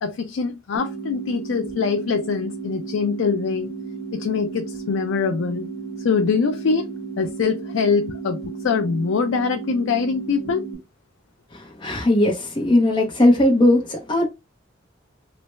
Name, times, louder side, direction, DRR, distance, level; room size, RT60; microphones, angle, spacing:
voice 1, 0.0-3.7 4.1-5.7 6.0-10.6, left 5 dB, 75° left, 0.4 m, -23 dB
sound 1, 0.7-10.7, right 5 dB, 55° left, 1.0 m, -34 dB
voice 2, 11.5-14.3, left 1 dB, 25° left, 0.6 m, -18 dB
3.2 x 2.0 x 3.0 m
head